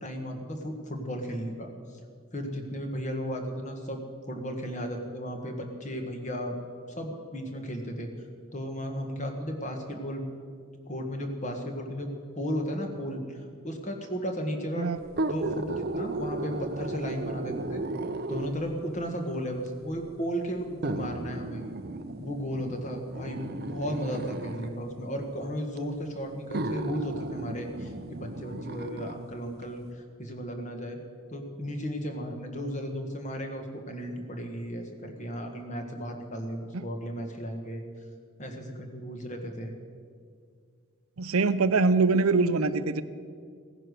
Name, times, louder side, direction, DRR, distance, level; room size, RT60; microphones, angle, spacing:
voice 1, 0.0-1.7 2.3-4.0 4.3-6.6 7.0-8.1 8.5-10.2 10.9-14.9 15.3-17.8 18.3-21.6 22.2-31.0 31.3-37.8 38.4-39.7, equal, 35° left, 4 dB, 1.6 m, -34 dB
sound 1, 15.1-18.7 19.7-19.8 20.8-24.7 25.8-25.9 26.5-29.2 29.6-29.7, right 2 dB, 45° right, 0.6 m, -34 dB
voice 2, 41.2-43.0, right 3 dB, 85° right, 13 dB, 0.7 m, -23 dB
17.0 x 10.0 x 6.6 m, 2.1 s
head